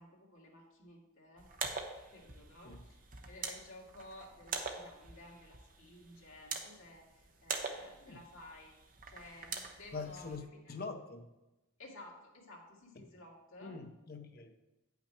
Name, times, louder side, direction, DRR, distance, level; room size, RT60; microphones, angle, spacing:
voice 1, 0.0-1.5 1.8-3.0 3.3-8.7 9.1-10.3 10.6-10.7 11.8-13.8, left 1 dB, 70° left, 2.0 m, -54 dB
sound 1, 1.4-10.4, right 4 dB, 40° right, 0.8 m, -44 dB
voice 2, 9.9-10.4 10.7-11.3 13.6-14.5, left 4 dB, 45° left, 0.7 m, -44 dB
8.8 x 5.8 x 4.4 m
head